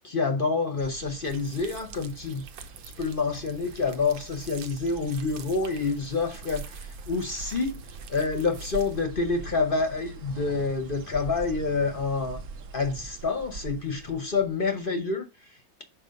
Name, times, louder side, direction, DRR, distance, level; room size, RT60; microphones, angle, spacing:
voice 1, 0.0-2.4 3.0-7.8 8.1-12.4 12.7-15.8, left 4 dB, 45° left, 0.7 m, -28 dB
sound 1, 0.8-14.9, right 3 dB, 60° right, 1.0 m, -44 dB
sound 2, 1.2-9.0, right 7 dB, 80° right, 1.5 m, -45 dB
6.1 x 4.5 x 5.1 m
omnidirectional pair, 2.0 m